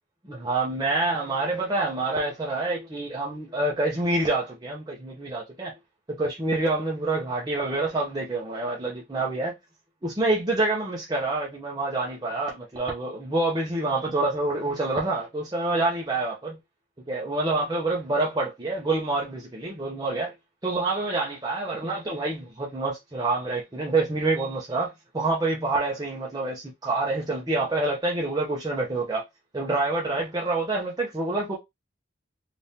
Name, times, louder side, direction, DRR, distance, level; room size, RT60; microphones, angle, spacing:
voice 1, 0.2-5.7 6.1-9.5 10.0-16.6 17.1-20.3 20.6-29.2 29.5-31.5, right 2 dB, 20° right, 0.7 m, -27 dB
3.5 x 2.5 x 2.7 m
head